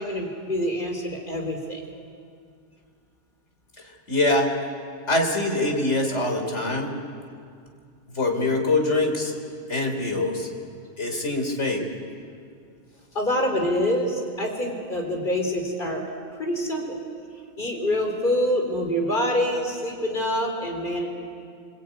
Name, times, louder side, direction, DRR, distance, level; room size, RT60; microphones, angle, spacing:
voice 1, 0.0-1.8 13.1-16.0 16.4-17.0 17.6-21.1, equal, 45° left, 2 dB, 4.3 m, -26 dB
voice 2, 3.8-4.7 5.1-6.9 8.1-9.4 9.7-10.5 11.0-11.8, left 2 dB, 75° left, 3 dB, 4.1 m, -24 dB
27.0 x 22.5 x 9.3 m, 2.3 s
omnidirectional pair, 1.2 m